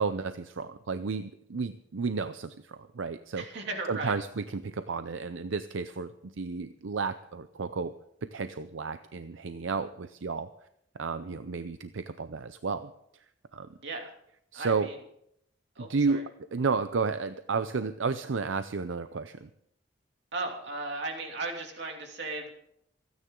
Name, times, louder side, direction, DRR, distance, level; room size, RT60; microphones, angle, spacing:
voice 1, 0.0-3.4 3.9-7.9 8.3-10.5 11.0-12.9 13.5-13.7 14.5-14.9 15.8-16.2 16.5-19.5, right 4 dB, 85° right, 11 dB, 0.6 m, -32 dB
voice 2, 3.4-4.1 13.8-14.1 14.5-15.0 15.8-16.2 20.3-22.5, right 2 dB, 65° right, 2 dB, 2.8 m, -36 dB
27.5 x 9.7 x 3.8 m, 0.74 s
head